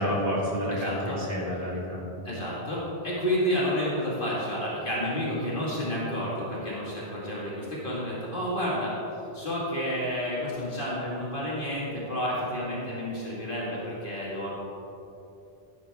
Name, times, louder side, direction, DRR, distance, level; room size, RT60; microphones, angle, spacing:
voice 1, 0.0-2.0, equal, 55° right, -5 dB, 2.9 m, -29 dB
voice 2, 0.7-1.2 2.2-9.0 9.3-14.5, equal, 55° left, -6 dB, 2.3 m, -30 dB
14.5 x 10.0 x 3.7 m, 2.9 s
omnidirectional pair, 1.1 m